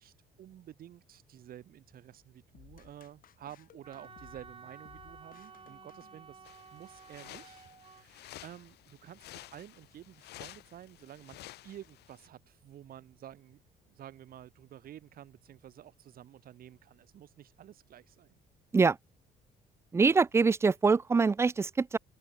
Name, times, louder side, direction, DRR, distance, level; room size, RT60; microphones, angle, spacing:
voice 1, 0.0-6.5 6.7-13.6 13.9-18.4, right 11 dB, 60° right, 5.7 m, -51 dB
sound 1, 2.5-6.7, left 11 dB, 60° left, 3.8 m, -59 dB
Wind instrument woodwind instrument, 3.8-8.1, right 5 dB, 30° right, 5.4 m, -53 dB
sound 2, 6.4-12.3, left 16 dB, 80° left, 5.3 m, -52 dB
voice 2, 19.9-22.0, right 4 dB, 15° right, 0.4 m, -24 dB
open air
cardioid pair, 110°, 17 cm